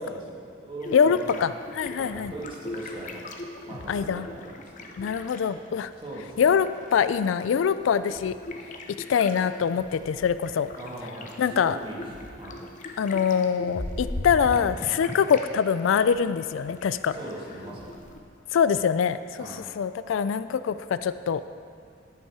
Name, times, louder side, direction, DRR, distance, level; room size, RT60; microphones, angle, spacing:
voice 1, 0.0-1.4 2.0-3.2 3.7-4.9 6.0-6.5 10.8-12.0 12.4-12.6 17.1-18.0 19.4-19.6, right 1 dB, 25° right, -4 dB, 1.9 m, -40 dB
sound 1, 0.8-5.8 6.1-15.5 15.8-18.2, left 2 dB, 40° left, 0.8 m, -39 dB
voice 2, 0.9-2.3 3.9-4.3 5.0-5.9 6.4-8.4 8.9-10.7 11.4-11.8 13.0-17.1 18.5-19.5 19.8-21.4, left 7 dB, 85° left, 13 dB, 0.3 m, -24 dB
10.0 x 8.3 x 4.8 m, 2.3 s
head